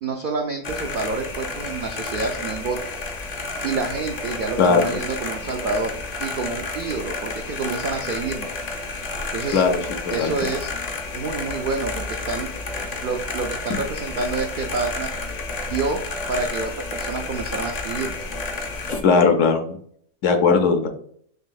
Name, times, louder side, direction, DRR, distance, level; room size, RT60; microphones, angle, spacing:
voice 1, 0.0-2.8 3.6-5.9 6.2-8.5 9.3-9.6 10.1-10.7 11.1-12.5 13.0-15.1 15.7-16.0 16.3-18.2, right 4 dB, 80° right, 4 dB, 0.4 m, -28 dB
sound 1, 0.6-19.0, left 3 dB, 45° left, 0.5 m, -31 dB
voice 2, 4.6-4.9 9.5-9.7 10.0-10.3 19.0-19.6 20.2-20.9, left 5 dB, 65° left, 5 dB, 1.0 m, -17 dB
6.5 x 2.7 x 2.3 m, 0.62 s
omnidirectional pair, 1.5 m